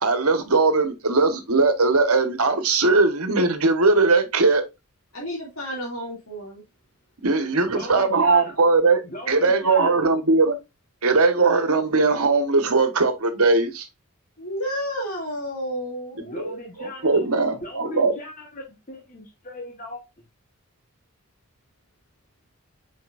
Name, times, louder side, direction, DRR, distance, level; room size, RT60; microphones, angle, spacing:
voice 1, 0.0-4.6 7.2-9.0 9.3-10.5 11.0-13.9 17.0-18.1, right 3 dB, 80° right, 1.4 m, -19 dB
voice 2, 5.1-6.6 14.4-16.6, equal, 65° left, 2.6 m, -31 dB
voice 3, 7.6-8.6 9.0-10.0 16.1-20.2, left 1 dB, 35° left, 1.3 m, -38 dB
8.3 x 5.2 x 2.5 m
head